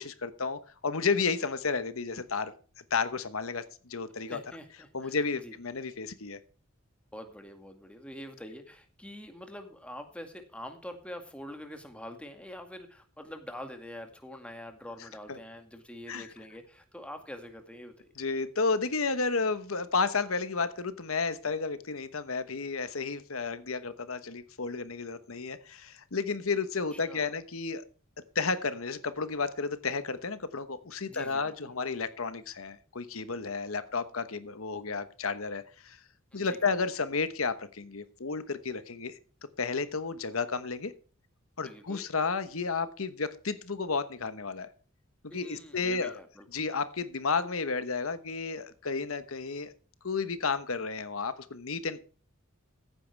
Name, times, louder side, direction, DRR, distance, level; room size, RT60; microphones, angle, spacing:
voice 1, 0.0-2.5 2.9-3.6 3.9-4.4 4.9-6.4 15.3-15.4 16.1-16.2 18.2-27.8 28.3-36.0 36.3-39.2 39.6-40.9 41.6-44.7 45.2-46.1 46.5-49.7 50.0-52.0, left 4 dB, 85° left, 12 dB, 1.1 m, -32 dB
voice 2, 4.1-5.5 7.1-18.1 26.9-27.3 31.1-31.7 36.3-36.7 41.6-42.0 45.3-46.5, left 1 dB, 5° left, 5 dB, 2.0 m, -45 dB
15.0 x 9.4 x 3.4 m, 0.39 s
head